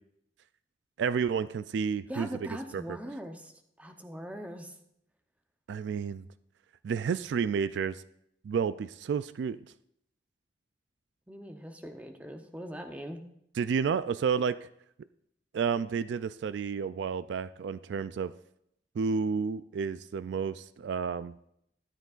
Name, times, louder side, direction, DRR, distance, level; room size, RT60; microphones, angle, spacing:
voice 1, 1.0-2.3 2.7-3.0 5.7-6.3 6.8-8.0 8.4-9.6 13.6-14.7 15.5-18.3 19.0-21.3, right 6 dB, 70° right, 15 dB, 0.3 m, -31 dB
voice 2, 2.1-3.5 3.8-4.7 11.3-13.2, equal, 10° right, 5 dB, 0.8 m, -41 dB
13.0 x 10.5 x 2.4 m, 0.74 s
head